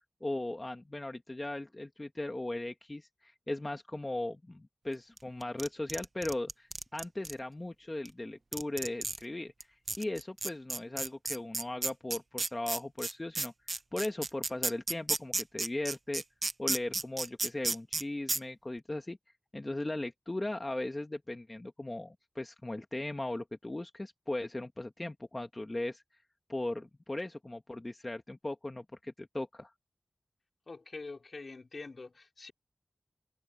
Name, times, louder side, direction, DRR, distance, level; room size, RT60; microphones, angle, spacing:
voice 1, 0.2-16.2 16.6-19.2 19.5-26.0 26.5-29.7, left 1 dB, 30° left, 1.3 m, -38 dB
sound 1, 5.2-7.3 8.1-8.2 8.5-9.2 9.6-9.7 9.9-18.0 18.3-18.4, right 3 dB, 50° right, 0.8 m, -33 dB
voice 2, 30.7-32.5, left 3 dB, 60° left, 4.4 m, -45 dB
open air
wide cardioid pair, 80°, 0 cm